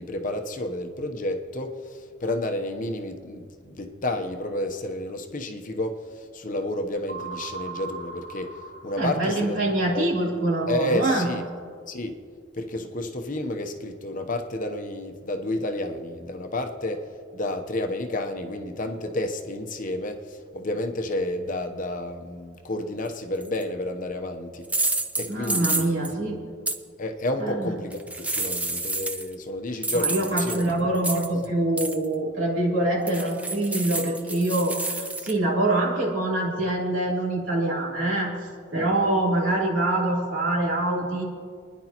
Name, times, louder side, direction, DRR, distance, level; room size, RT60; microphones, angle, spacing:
voice 1, 0.0-8.5 8.8-9.6 9.9-10.1 10.7-11.4 11.9-12.2 12.5-17.1 17.3-24.7 25.2-26.0 27.0-30.7 38.7-39.0, left 1 dB, 40° left, 5 dB, 0.9 m, -31 dB
sound 1, 7.1-9.7, right 5 dB, 30° right, 3.7 m, -39 dB
voice 2, 9.0-11.3 25.3-26.4 27.4-27.7 29.9-38.3 38.7-41.2, right 1 dB, 70° right, -4 dB, 3.4 m, -25 dB
sound 2, 23.4-23.6 24.6-26.1 26.7-26.8 27.9-29.3 29.8-31.5 31.8-32.1 33.1-35.3, right 2 dB, 5° right, 0.5 m, -29 dB
28.0 x 10.5 x 3.0 m, 2.1 s
head